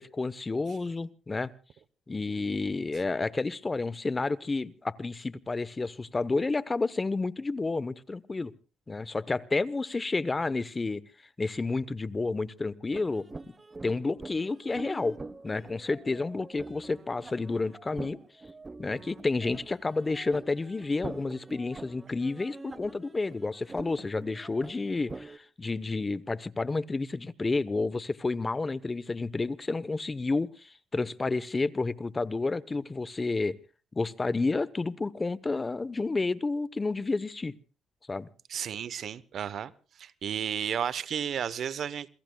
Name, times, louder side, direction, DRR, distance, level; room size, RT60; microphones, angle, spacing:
voice 1, 0.0-1.5 2.1-8.5 8.9-11.0 11.4-13.5 13.8-15.2 15.4-18.2 18.8-33.6 33.9-37.5 38.1-38.3, left 3 dB, 25° left, 17 dB, 0.9 m, -30 dB
sound 1, 12.9-25.4, right 3 dB, 25° right, 0.9 m, -45 dB
voice 2, 38.5-39.7 40.0-42.1, right 8 dB, 60° right, 17 dB, 0.9 m, -33 dB
28.0 x 22.0 x 2.3 m, 0.35 s
cardioid pair, 90°, 0 cm